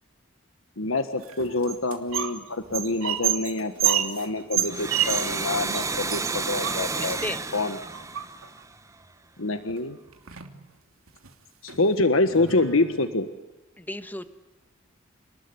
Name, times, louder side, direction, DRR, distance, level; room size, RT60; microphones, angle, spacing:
voice 1, 0.8-7.2 7.5-7.8 9.4-10.0 11.6-13.3, left 2 dB, 85° left, 9 dB, 1.6 m, -26 dB
sound 1, 1.2-2.4 2.6-5.4 5.7-5.8 6.1-7.2 7.9-8.6 9.7-9.8 10.1-10.6 11.1-11.3 11.7-11.8 12.3-13.1, right 11 dB, 90° right, 3.0 m, -29 dB
Domestic sounds home sounds, 4.6-9.1, right 3 dB, 15° right, 1.0 m, -31 dB
voice 2, 6.9-7.4 13.8-14.3, left 1 dB, 10° left, 10 dB, 1.4 m, -34 dB
29.5 x 20.0 x 9.8 m, 1.0 s
head